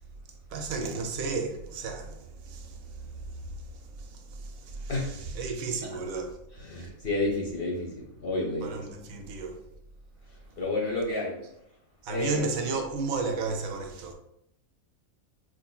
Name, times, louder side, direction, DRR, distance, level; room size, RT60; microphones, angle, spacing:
voice 1, 0.5-6.4 6.8-6.9 8.6-9.6 12.0-14.1, right 4 dB, 75° right, 1.0 m, -34 dB
voice 2, 6.7-8.8 10.6-11.3 12.1-12.3, left 2 dB, 55° left, 0.7 m, -30 dB
4.6 x 2.7 x 2.3 m
omnidirectional pair, 1.5 m